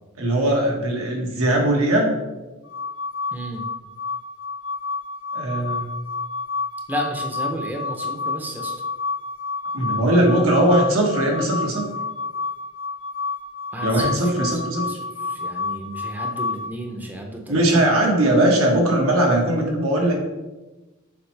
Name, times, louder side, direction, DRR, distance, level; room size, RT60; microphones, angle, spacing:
voice 1, 0.2-2.1 5.3-5.9 9.7-11.8 13.8-14.9 17.5-20.1, right 1 dB, 85° right, -1 dB, 1.5 m, -19 dB
sound 1, 2.6-16.7, left 4 dB, 70° left, 0.8 m, -30 dB
voice 2, 3.3-3.6 6.9-8.7 13.7-14.1 14.9-15.0 15.3-17.8, right 1 dB, 10° right, 1 dB, 0.6 m, -32 dB
7.0 x 4.2 x 3.3 m, 1.1 s
head